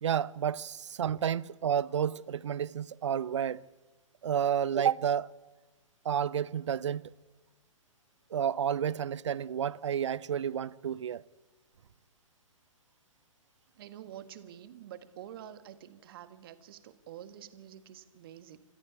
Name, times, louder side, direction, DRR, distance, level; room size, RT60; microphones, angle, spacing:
voice 1, 0.0-3.6 4.2-5.3 6.0-7.0 8.3-11.2, right 9 dB, 55° right, 0.7 m, -30 dB
voice 2, 13.8-18.6, right 10 dB, 40° right, 1.7 m, -48 dB
27.0 x 14.0 x 9.9 m
figure-of-eight pair, 125°, 18 cm